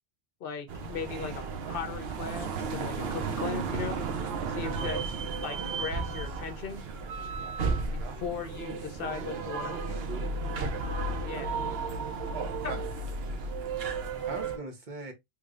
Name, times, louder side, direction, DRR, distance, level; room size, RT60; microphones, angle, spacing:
voice 1, 0.4-4.0 4.5-5.0 5.4-6.8 7.9-9.8 11.2-11.6 12.6-12.8, left 6 dB, 65° left, 0.8 m, -38 dB
sound 1, 0.7-14.6, right 4 dB, 75° right, 0.9 m, -33 dB
voice 2, 5.5-5.9 8.3-8.4 9.0-10.3 13.9-15.1, right 3 dB, 50° right, 1.0 m, -42 dB
3.2 x 3.1 x 2.4 m
omnidirectional pair, 1.0 m